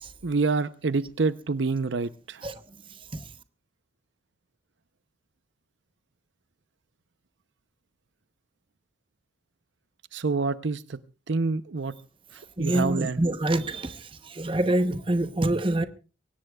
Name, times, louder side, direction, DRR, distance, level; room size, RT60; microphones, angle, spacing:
voice 1, 0.2-2.4 10.1-11.0 11.3-11.9 12.6-13.2, right 4 dB, 70° right, 0.7 m, -27 dB
voice 2, 12.6-15.9, right 1 dB, 25° right, 0.8 m, -26 dB
24.0 x 17.5 x 2.3 m
head